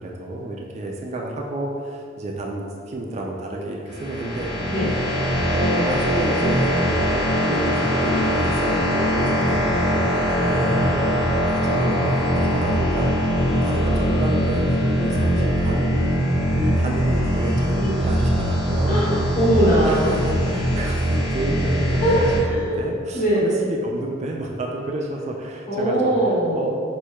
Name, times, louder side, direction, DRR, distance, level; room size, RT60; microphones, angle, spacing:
voice 1, 0.0-4.5 5.5-13.1 13.6-19.0 19.8-26.1 26.5-26.7, right 1 dB, 35° right, 0 dB, 0.3 m, -30 dB
sound 1, 3.9-22.4, equal, 25° left, 1.1 m, -21 dB
voice 2, 18.9-20.3 22.0-22.8 23.1-23.6 25.7-26.7, right 1 dB, 45° left, -9 dB, 1.3 m, -21 dB
6.1 x 2.2 x 2.2 m, 2.3 s
head